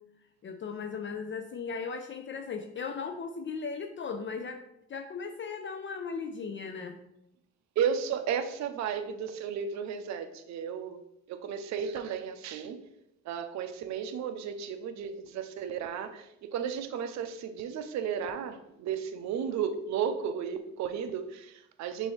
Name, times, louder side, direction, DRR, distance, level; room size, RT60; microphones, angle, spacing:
voice 1, 0.4-4.6 4.9-7.0, left 5 dB, 40° left, 6 dB, 0.4 m, -37 dB
voice 2, 7.8-11.0 11.3-12.8 13.2-22.1, right 7 dB, 65° right, 8 dB, 0.5 m, -34 dB
6.2 x 2.7 x 3.1 m, 0.83 s
cardioid pair, 90°, 30 cm